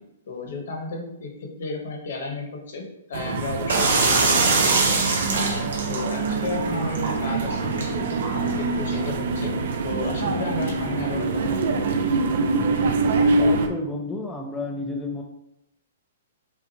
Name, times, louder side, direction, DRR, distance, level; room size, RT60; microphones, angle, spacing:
voice 1, 0.3-5.0 5.3-5.5 5.9-9.5 9.8-11.9, left 3 dB, 65° left, 2 dB, 1.2 m, -33 dB
sound 1, 3.1-13.7, right 3 dB, 55° right, 0.5 m, -25 dB
sound 2, 3.7-9.2, right 3 dB, 80° right, 1.1 m, -24 dB
voice 2, 13.4-15.2, left 2 dB, 5° left, 0 dB, 0.3 m, -31 dB
5.7 x 2.6 x 2.9 m, 0.81 s
hypercardioid pair, 165°, 0 cm